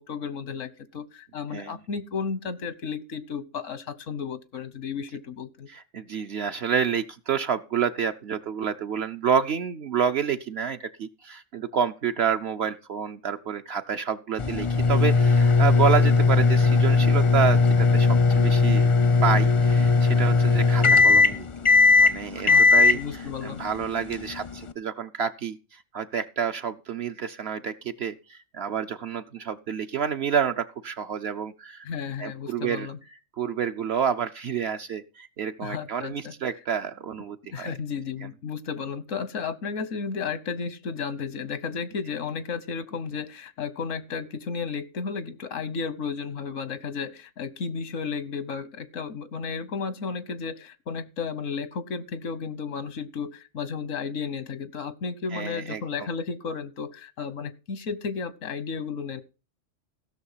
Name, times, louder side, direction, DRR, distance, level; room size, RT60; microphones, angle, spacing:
voice 1, 0.0-5.7 22.3-22.6 22.9-23.6 31.8-33.0 35.6-36.3 37.5-59.2, left 5 dB, 85° left, 1.4 m, -33 dB
voice 2, 5.7-31.8 32.2-32.9 33.4-37.8 38.2-38.3 55.3-55.8, right 7 dB, 60° right, 0.9 m, -29 dB
sound 1, 14.4-24.7, left 4 dB, 35° left, 0.5 m, -19 dB
16.0 x 6.6 x 5.6 m
omnidirectional pair, 1.3 m